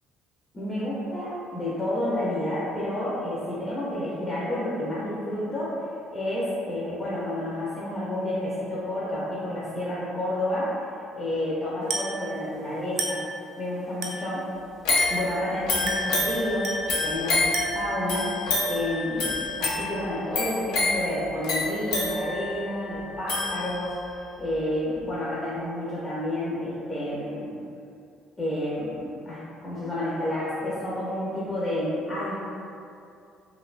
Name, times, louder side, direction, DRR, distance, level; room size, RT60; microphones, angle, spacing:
voice 1, 0.5-10.8 11.2-13.2 13.6-14.5 15.1-16.7 17.0-18.4 18.7-24.0 24.4-27.5 28.4-32.4, left 1 dB, 20° left, -9 dB, 0.5 m, -30 dB
Glass, 11.9-12.2 13.0-13.3 14.0-14.3 15.0-15.3 15.9-16.2 16.6-17.0 17.5-17.9, right 2 dB, 55° right, 0.4 m, -31 dB
sound 1, 14.8-24.1 24.6-24.7, left 2 dB, 85° left, 0.5 m, -28 dB
2.5 x 2.1 x 2.4 m, 2.5 s
cardioid pair, 110°, 0 cm